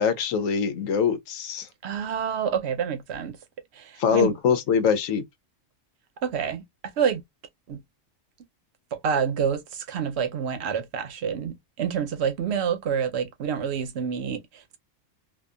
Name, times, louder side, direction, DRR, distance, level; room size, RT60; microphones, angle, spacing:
voice 1, 0.0-1.7 4.0-5.2, left 6 dB, 85° left, 1.0 m, -23 dB
voice 2, 1.8-3.4 3.7-4.3 6.2-6.6 7.0-7.2 7.7-7.8 8.9-14.8, right 7 dB, 65° right, 0.8 m, -28 dB
2.7 x 2.4 x 2.3 m
omnidirectional pair, 1.3 m